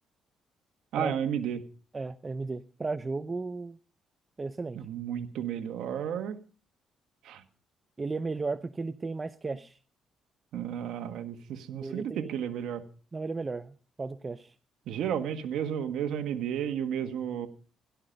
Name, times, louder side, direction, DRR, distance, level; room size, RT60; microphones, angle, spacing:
voice 1, 0.9-1.6 4.7-6.4 7.2-7.4 10.5-12.8 14.9-17.5, right 9 dB, 80° right, 7 dB, 1.6 m, -32 dB
voice 2, 1.9-3.8 4.4-4.8 8.0-9.8 11.8-12.3 13.1-14.5, right 3 dB, 30° right, 13 dB, 0.7 m, -35 dB
17.0 x 12.0 x 5.3 m, 0.42 s
cardioid pair, 90°, 0 cm